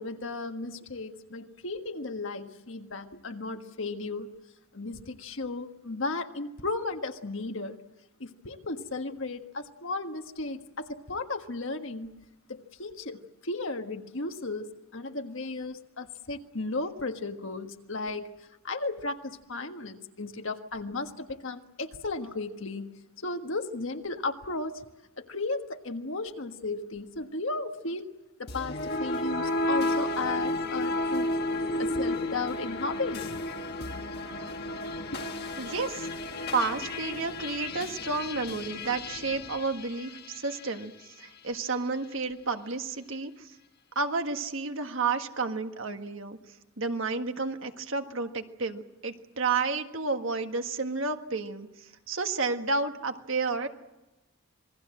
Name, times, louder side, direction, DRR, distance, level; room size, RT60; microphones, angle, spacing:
voice 1, 0.0-4.3 4.7-7.8 8.2-12.1 12.5-18.3 18.6-22.9 23.2-24.8 25.2-28.1 28.4-31.3 31.8-33.4 35.1-35.2 37.1-37.2, left 3 dB, 60° left, 6 dB, 1.6 m, -35 dB
sound 1, 28.5-40.8, left 1 dB, 45° left, 1.5 m, -32 dB
voice 2, 35.6-36.1 36.5-40.9 41.2-43.5 43.9-46.4 46.8-51.7 52.1-53.7, right 4 dB, 60° right, 6 dB, 1.6 m, -31 dB
27.0 x 20.0 x 7.7 m, 1.0 s
head